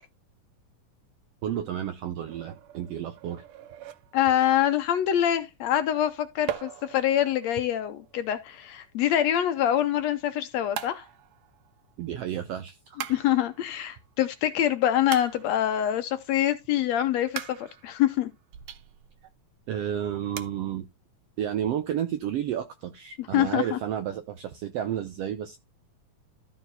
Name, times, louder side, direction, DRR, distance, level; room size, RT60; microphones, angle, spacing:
voice 1, 1.4-3.4 12.0-13.0 19.7-20.9 21.4-25.6, right 10 dB, 75° right, 1.4 m, -31 dB
sound 1, 2.3-4.6 6.5-9.5 10.8-12.2 13.0-14.1 15.1-16.0 17.4-19.3 19.7-19.8 20.3-20.4, right 10 dB, 90° right, 1.3 m, -41 dB
voice 2, 4.1-11.0 13.1-17.6 17.8-18.3 23.2-23.8, left 11 dB, 70° left, 1.9 m, -25 dB
13.5 x 4.5 x 4.0 m
omnidirectional pair, 3.6 m